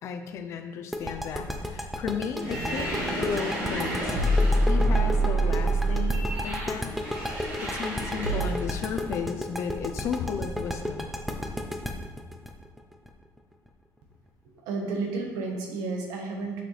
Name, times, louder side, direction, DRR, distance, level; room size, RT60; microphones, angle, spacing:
voice 1, 0.0-4.2 4.5-6.9 7.6-11.1, left 6 dB, 45° left, 6 dB, 0.6 m, -34 dB
sound 1, 0.9-13.7, equal, ahead, 0.4 m, -33 dB
sound 2, 2.4-8.8, right 1 dB, 30° right, 1.7 m, -27 dB
voice 2, 14.4-16.6, right 3 dB, 80° right, 2 dB, 1.4 m, -32 dB
6.6 x 6.3 x 3.3 m, 1.3 s
cardioid pair, 180°, 7 cm